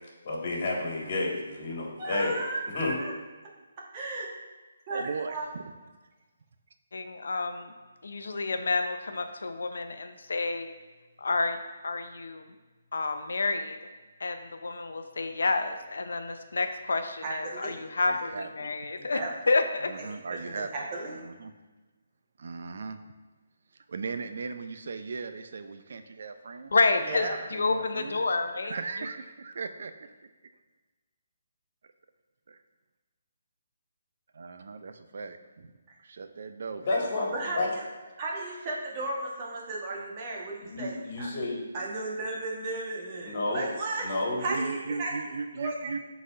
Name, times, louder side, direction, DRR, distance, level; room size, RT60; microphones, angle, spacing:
voice 1, 0.2-2.4 2.7-3.0 36.8-37.7 40.6-41.6 43.3-43.6 44.0-44.4, left 2 dB, 45° left, -2 dB, 1.8 m, -30 dB
voice 2, 2.0-3.1 3.9-4.3 4.9-5.5 17.2-17.7 19.1-19.3 20.3-21.2 27.0-27.4 35.9-36.0 37.3-37.8 38.2-41.3 41.7-44.1 44.4-45.2 45.6-45.9, right 2 dB, 30° right, -3 dB, 1.3 m, -35 dB
voice 3, 4.9-5.7 18.0-18.9 19.8-20.7 21.1-21.5 22.4-23.0 23.9-26.7 27.5-28.4 28.6-30.1 32.5-32.6 34.3-35.7 36.0-36.9 44.5-46.0, right 4 dB, 65° right, 8 dB, 0.5 m, -37 dB
voice 4, 6.9-7.7 8.0-10.7 11.2-11.6 11.8-12.4 12.9-13.8 14.2-19.2 19.5-19.9 26.7-29.1, left 3 dB, 80° left, 7 dB, 0.6 m, -29 dB
11.0 x 4.1 x 2.6 m, 1.2 s
hypercardioid pair, 155°, 0 cm